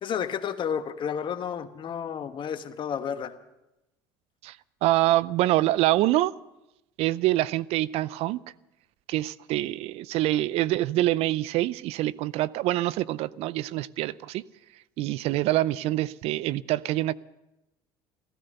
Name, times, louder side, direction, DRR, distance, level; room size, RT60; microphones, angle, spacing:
voice 1, 0.0-3.3, left 8 dB, 45° left, 1.3 m, -31 dB
voice 2, 4.8-6.3 7.0-8.4 9.1-14.4 15.0-17.1, right 16 dB, 60° right, 0.5 m, -25 dB
15.5 x 14.0 x 6.7 m
hypercardioid pair, 80°, 11 cm